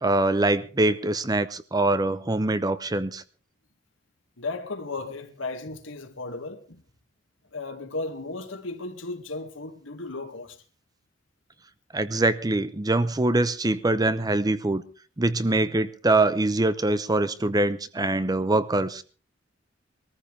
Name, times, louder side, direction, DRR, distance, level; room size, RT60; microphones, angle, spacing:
voice 1, 0.0-3.2 11.9-14.8 15.2-19.0, right 2 dB, 20° right, 0.7 m, -23 dB
voice 2, 4.4-6.8 7.5-10.6, left 3 dB, 75° left, 2.1 m, -35 dB
22.0 x 14.5 x 3.4 m
head